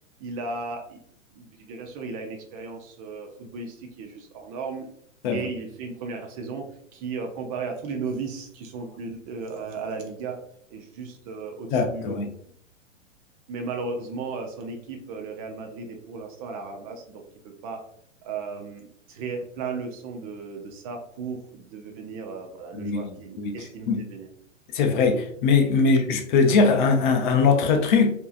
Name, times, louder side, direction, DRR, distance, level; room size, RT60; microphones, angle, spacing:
voice 1, 0.2-1.0 1.4-4.9 5.3-6.6 6.9-10.4 10.7-12.2 13.5-17.2 17.6-17.8 18.2-24.3, right 4 dB, 30° right, 0.5 m, -35 dB
voice 2, 11.7-12.3 22.7-23.0 23.4-23.5 23.9-24.0 24.7-28.1, left 4 dB, 40° left, 0.6 m, -21 dB
4.6 x 2.7 x 2.4 m
hypercardioid pair, 115°, 39 cm